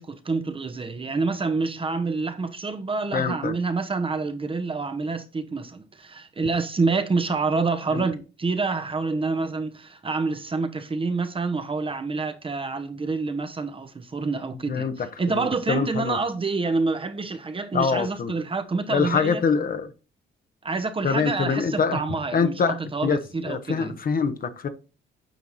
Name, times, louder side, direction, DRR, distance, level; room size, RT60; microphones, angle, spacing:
voice 1, 0.0-19.4 20.6-24.0, right 4 dB, 25° right, 1.0 m, -27 dB
voice 2, 3.1-3.5 7.9-8.0 14.7-16.2 17.7-18.3 18.9-19.9 21.0-22.0 22.3-24.7, left 5 dB, 45° left, 1.1 m, -25 dB
9.2 x 4.7 x 4.1 m
cardioid pair, 90°, 20 cm